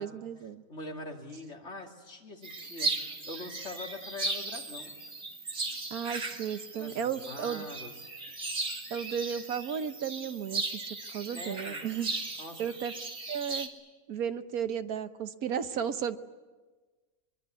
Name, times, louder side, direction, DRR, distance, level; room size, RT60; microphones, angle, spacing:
voice 1, 0.0-0.6 5.9-7.7 8.9-12.1 12.6-12.9 13.3-13.7 14.1-16.2, right 8 dB, 90° right, 11 dB, 1.5 m, -34 dB
voice 2, 0.7-4.9 6.7-7.9 11.3-11.8 12.4-12.6, left 2 dB, 50° left, 1 dB, 3.1 m, -43 dB
sound 1, 2.4-13.7, right 3 dB, 60° right, 2.8 m, -37 dB
24.5 x 23.0 x 9.6 m, 1.3 s
omnidirectional pair, 1.5 m